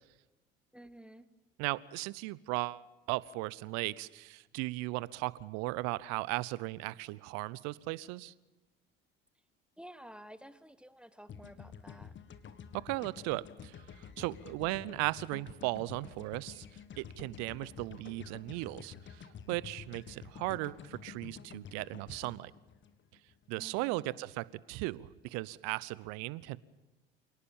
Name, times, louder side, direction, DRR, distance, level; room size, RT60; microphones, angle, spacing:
voice 1, 0.7-1.3 9.8-12.1 23.6-24.1, equal, 5° right, 13 dB, 1.2 m, -52 dB
voice 2, 1.6-8.3 12.7-16.7 17.0-22.5 23.5-26.6, right 20 dB, 60° right, 21 dB, 0.8 m, -37 dB
sound 1, 11.3-23.5, left 7 dB, 40° left, 1.7 m, -50 dB
27.5 x 18.5 x 7.3 m, 1.1 s
hypercardioid pair, 65°, 29 cm